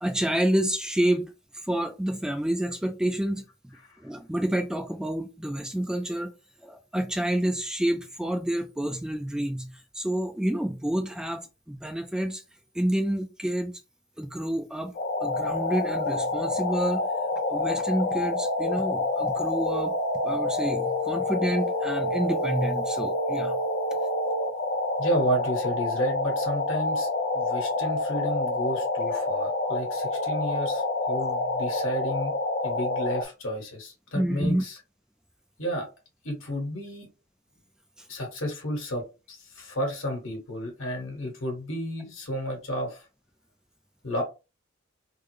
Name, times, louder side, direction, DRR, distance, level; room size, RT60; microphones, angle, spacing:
voice 1, 0.0-1.3 1.6-3.8 4.0-6.3 6.6-12.4 12.7-13.7 14.2-14.9 15.2-17.1 17.5-19.9 20.2-23.6 34.1-34.6, right 1 dB, 5° right, 0.3 m, -28 dB
sound 1, 14.9-33.2, left 2 dB, 50° left, 0.5 m, -28 dB
voice 2, 25.0-27.1 27.3-32.3 32.6-34.8 35.6-35.9 36.2-37.1 38.1-43.1 44.0-44.2, equal, 75° left, 1.5 m, -32 dB
3.5 x 2.1 x 3.2 m
head